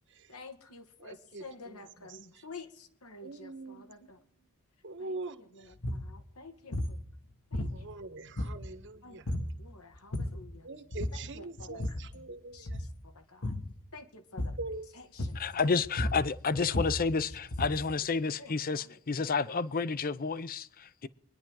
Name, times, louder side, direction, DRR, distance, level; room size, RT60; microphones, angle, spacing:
voice 1, 0.3-4.2 5.0-7.0 7.5-7.9 9.0-10.7 11.1-13.6 13.9-14.6 14.9-15.6 16.8-16.9 18.4-18.8, left 3 dB, 85° left, 1.9 m, -51 dB
voice 2, 1.0-2.5 3.2-3.9 4.8-5.7 7.7-9.3 10.6-12.8 14.6-14.9, right 3 dB, 55° right, 1.3 m, -43 dB
sound 1, 5.7-6.1 6.7-7.0 7.5-8.0 8.4-8.8 9.3-9.6 9.9-10.5 10.9-11.3 11.6-12.1 12.6-13.0 13.4-13.7 14.4-14.7 15.2-15.6 15.8-17.9, left 1 dB, 70° left, 1.7 m, -34 dB
voice 3, 15.3-21.1, left 4 dB, 40° left, 0.6 m, -30 dB
24.5 x 10.5 x 3.8 m
head